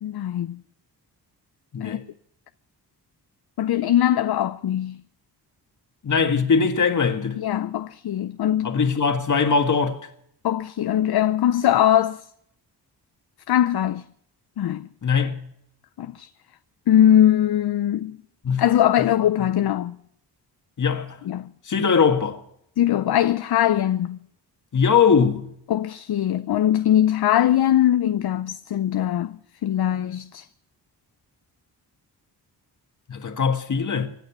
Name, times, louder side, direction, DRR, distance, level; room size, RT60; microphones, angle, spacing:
voice 1, 0.0-0.6 1.8-2.0 3.6-5.0 7.4-8.8 10.4-12.2 13.5-14.0 14.6-14.9 16.0-16.3 16.9-18.2 18.6-20.0 21.3-21.5 22.8-24.2 25.7-30.5, left 11 dB, 65° left, 0.6 m, -21 dB
voice 2, 1.7-2.0 6.0-7.4 8.6-10.1 15.0-15.5 18.4-18.6 20.8-21.2 21.6-22.4 24.7-25.5 33.1-34.1, left 5 dB, 45° left, 1.7 m, -21 dB
25.0 x 9.1 x 5.8 m
wide cardioid pair, 145°, 41 cm